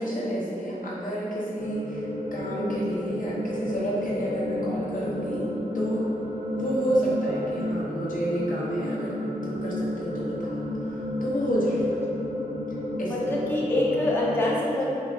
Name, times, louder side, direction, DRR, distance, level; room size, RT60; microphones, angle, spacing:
voice 1, 0.0-5.5 5.7-6.1 6.5-9.2 9.4-12.0 13.0-13.4, equal, 65° left, -7 dB, 0.7 m, -29 dB
sound 1, 1.6-14.5, left 1 dB, 65° right, 1.0 m, -32 dB
voice 2, 13.0-15.0, left 1 dB, 15° left, -5 dB, 0.5 m, -25 dB
3.0 x 2.4 x 3.1 m, 2.9 s
wide cardioid pair, 55°, 15 cm